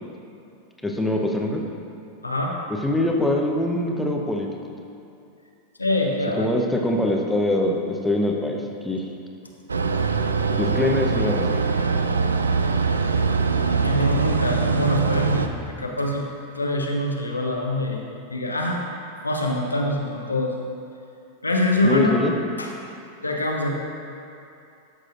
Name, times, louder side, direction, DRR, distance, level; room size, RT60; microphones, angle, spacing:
voice 1, 0.8-1.6 2.8-4.5 6.3-9.0 10.6-11.5 21.8-22.3, left 1 dB, 5° left, 0 dB, 0.9 m, -23 dB
voice 2, 2.2-2.6 5.8-6.5 13.8-16.3 16.6-18.0 18.3-18.8 19.2-20.5 21.4-22.2 22.6-22.7 23.2-23.7, left 1 dB, 80° left, 0 dB, 0.8 m, -24 dB
sound 1, 9.7-15.5, right 5 dB, 75° right, 0.4 m, -22 dB
13.5 x 6.5 x 2.5 m, 2.6 s
figure-of-eight pair, 90°, 0 cm